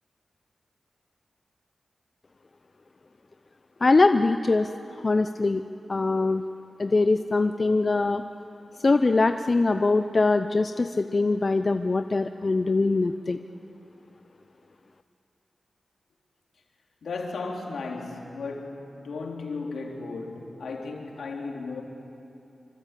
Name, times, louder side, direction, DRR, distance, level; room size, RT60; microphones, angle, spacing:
voice 1, 3.8-4.7 5.0-5.6 5.9-6.4 6.8-8.2 8.8-13.4, left 3 dB, 50° left, 0.8 m, -22 dB
voice 2, 17.0-21.8, left 3 dB, 80° left, 3.4 m, -35 dB
25.5 x 25.0 x 8.4 m
cardioid pair, 40°, 0 cm